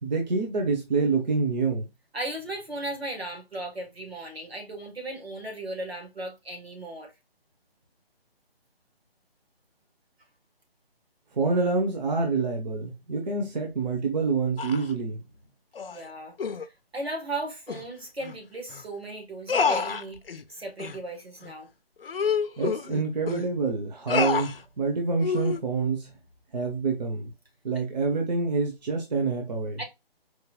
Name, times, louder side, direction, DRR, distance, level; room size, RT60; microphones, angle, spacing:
voice 1, 0.0-1.9 11.4-15.2 22.6-26.1 26.5-27.3 27.6-29.8, right 4 dB, 45° right, 1.1 m, -27 dB
voice 2, 2.1-7.1 15.9-16.3 16.6-20.2 20.5-21.7 29.8-29.9, right 2 dB, 85° right, 2.1 m, -36 dB
sound 1, 14.6-14.9 15.7-16.0 16.4-16.6 17.7-17.8 18.2-18.4 18.7-18.8 19.5-20.4 20.8-21.0 21.4-21.5 22.0-23.5 24.1-24.6 25.2-25.6, left 6 dB, 70° left, 0.6 m, -28 dB
4.7 x 3.2 x 2.4 m
figure-of-eight pair, 150°, 30 cm